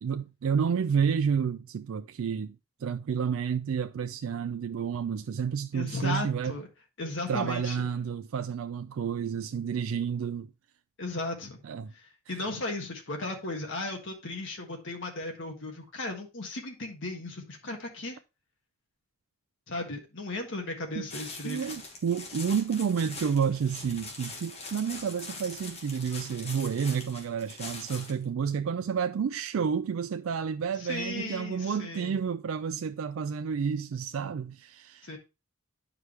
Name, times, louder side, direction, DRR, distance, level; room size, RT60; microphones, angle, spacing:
voice 1, 0.0-6.5 7.3-10.5 11.6-11.9 12.3-12.4 21.0-21.1 21.4-35.2, right 6 dB, 65° right, 0.3 m, -30 dB
voice 2, 5.7-6.7 7.0-7.8 11.0-11.6 11.9-18.2 19.7-21.6 30.8-32.2 35.0-35.2, left 2 dB, 55° left, 1.5 m, -36 dB
sound 1, 21.1-28.2, left 3 dB, 30° left, 1.6 m, -42 dB
9.6 x 4.8 x 3.2 m
head